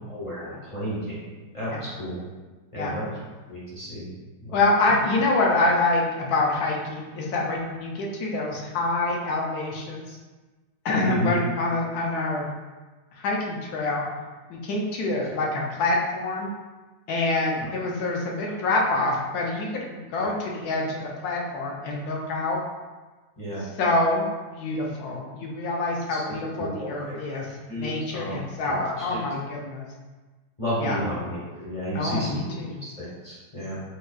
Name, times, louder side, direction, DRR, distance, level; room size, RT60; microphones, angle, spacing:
voice 1, 0.1-2.2 2.7-3.1 3.5-4.1 4.4-5.0 11.0-11.4 20.2-20.3 23.4-23.6 26.1-27.2 27.7-28.4 28.6-29.2 30.6-32.4 32.8-33.8, equal, 30° left, -8 dB, 0.6 m, -32 dB
voice 2, 4.5-10.2 10.8-12.5 13.2-14.1 14.5-16.5 17.1-22.6 23.8-24.3 24.5-27.5 27.8-29.9 30.8-31.0 31.9-32.8, left 2 dB, 70° left, -1 dB, 1.0 m, -26 dB
4.3 x 2.3 x 2.3 m, 1.3 s
omnidirectional pair, 1.9 m